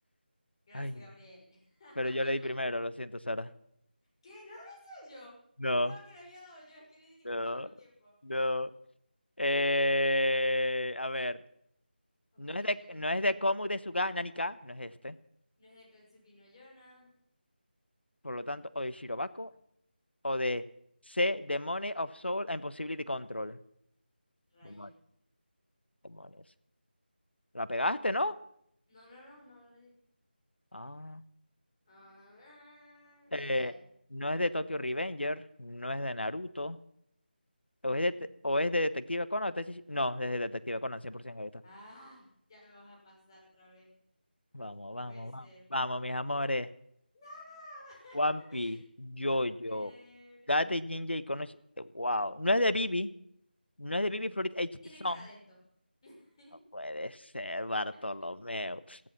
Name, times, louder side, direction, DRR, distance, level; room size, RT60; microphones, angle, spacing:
voice 1, 0.7-2.3 4.2-5.4 5.7-8.1 12.3-13.3 15.6-17.1 24.5-24.9 28.9-30.0 31.9-33.8 41.6-43.9 45.0-45.6 47.1-48.2 48.5-48.8 49.2-50.5 54.8-55.6 56.0-56.5 57.9-58.1, left 1 dB, 30° left, -2 dB, 6.6 m, -54 dB
voice 2, 2.0-3.5 5.6-5.9 7.2-7.7 8.2-8.7 9.4-11.4 12.4-15.1 18.2-19.5 20.2-20.6 21.1-23.6 24.6-24.9 26.0-26.3 27.5-28.3 30.7-31.2 33.3-33.7 34.1-36.8 37.8-38.1 38.4-41.5 44.5-45.4 45.7-46.7 48.1-49.9 50.5-53.1 53.8-54.7 55.0-55.2 56.7-59.0, left 1 dB, 90° left, 14 dB, 1.3 m, -32 dB
15.5 x 15.5 x 6.0 m, 0.71 s
figure-of-eight pair, 165°, 6 cm